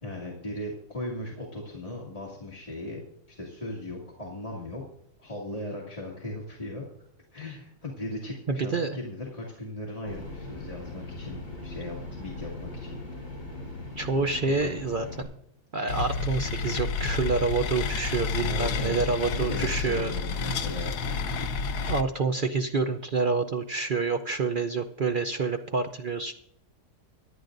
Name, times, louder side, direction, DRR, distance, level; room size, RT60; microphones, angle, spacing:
voice 1, 0.0-4.8 5.2-6.9 7.3-13.0 14.4-14.8 18.4-20.9, left 1 dB, 25° left, -4 dB, 2.1 m, -38 dB
voice 2, 8.5-9.0 14.0-15.3 15.7-20.1 21.9-26.3, right 4 dB, 65° right, 6 dB, 0.5 m, -28 dB
sound 1, 10.1-15.2, left 2 dB, 55° left, 5.0 m, -39 dB
sound 2, 15.9-22.0, left 5 dB, 85° left, 1.5 m, -30 dB
25.0 x 9.1 x 2.6 m, 0.73 s
omnidirectional pair, 1.7 m